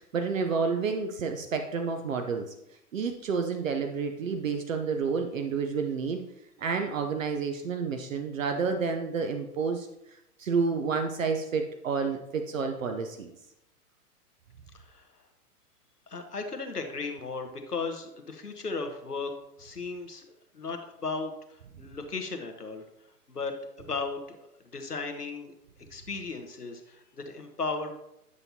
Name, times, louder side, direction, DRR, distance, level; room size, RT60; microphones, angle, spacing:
voice 1, 0.0-2.5 2.9-6.2 6.6-9.9 10.4-13.3, right 5 dB, 60° right, 5 dB, 0.8 m, -30 dB
voice 2, 14.7-15.1 16.1-19.3 19.6-22.8 23.3-23.5 23.8-25.5 25.9-27.9, left 4 dB, 85° left, 5 dB, 1.2 m, -36 dB
9.7 x 6.5 x 2.8 m, 0.83 s
figure-of-eight pair, 110°, 46 cm